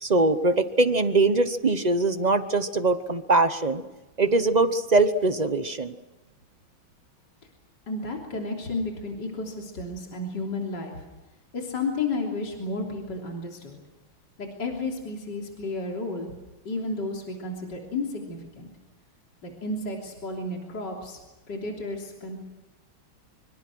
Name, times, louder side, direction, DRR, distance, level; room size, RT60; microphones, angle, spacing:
voice 1, 0.0-3.8 4.2-5.9, right 3 dB, 35° right, 10 dB, 0.7 m, -22 dB
voice 2, 7.9-11.0 11.5-13.8 14.4-16.3 16.7-18.7 19.4-21.2 21.5-22.4, left 2 dB, 55° left, 0 dB, 3.8 m, -32 dB
25.0 x 25.0 x 6.2 m, 1.1 s
omnidirectional pair, 2.2 m